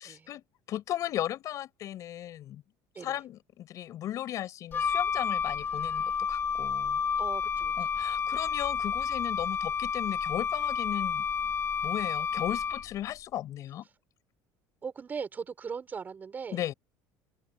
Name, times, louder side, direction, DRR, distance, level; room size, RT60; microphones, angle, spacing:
voice 1, 0.0-2.6 3.0-7.0 7.8-11.2 11.8-13.9 16.5-16.7, left 12 dB, 45° left, 6.7 m, -36 dB
Wind instrument woodwind instrument, 4.7-13.0, left 6 dB, 30° left, 3.6 m, -30 dB
voice 2, 7.2-8.0 14.8-16.7, right 6 dB, 20° right, 6.5 m, -39 dB
open air
cardioid pair, 150°, 8 cm